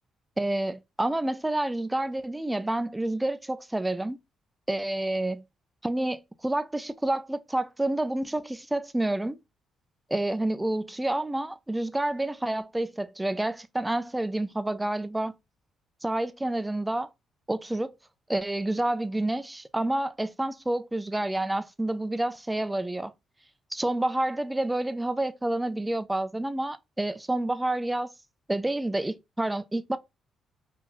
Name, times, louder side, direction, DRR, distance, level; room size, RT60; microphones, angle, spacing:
voice 1, 0.4-4.2 4.7-5.4 5.8-9.4 10.1-15.4 16.0-17.1 17.5-17.9 18.3-23.1 23.7-28.1 28.5-30.0, right 1 dB, 10° right, 0.4 m, -29 dB
3.0 x 2.5 x 3.7 m
cardioid pair, 90°, 0 cm